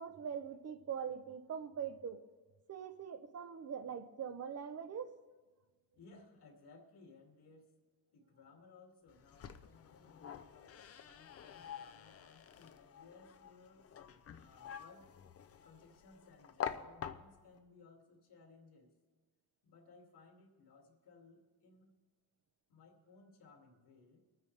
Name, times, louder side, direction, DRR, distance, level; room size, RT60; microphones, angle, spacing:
voice 1, 0.0-2.2 2.7-5.2, right 7 dB, 40° right, 10 dB, 0.7 m, -42 dB
voice 2, 5.9-7.7 8.1-15.1 15.6-18.9 19.6-21.9 22.7-24.2, left 4 dB, 80° left, 1 dB, 2.4 m, -61 dB
sound 1, 9.1-17.6, left 8 dB, 40° left, 0.5 m, -47 dB
23.0 x 9.6 x 3.3 m, 1.2 s
wide cardioid pair, 170°, 38 cm